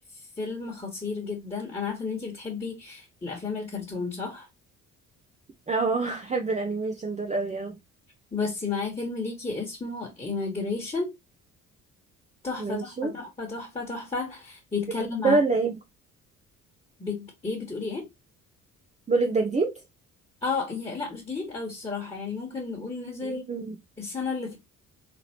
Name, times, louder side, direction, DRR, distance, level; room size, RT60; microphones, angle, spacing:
voice 1, 0.1-4.5 8.3-11.1 12.4-15.4 17.0-18.1 20.4-23.5 24.0-24.6, left 4 dB, 15° left, 1.6 m, -32 dB
voice 2, 5.7-7.8 12.6-13.1 15.2-15.7 19.1-19.8 23.2-23.8, right 3 dB, 15° right, 0.7 m, -26 dB
3.7 x 3.3 x 2.8 m
figure-of-eight pair, 45°, 41 cm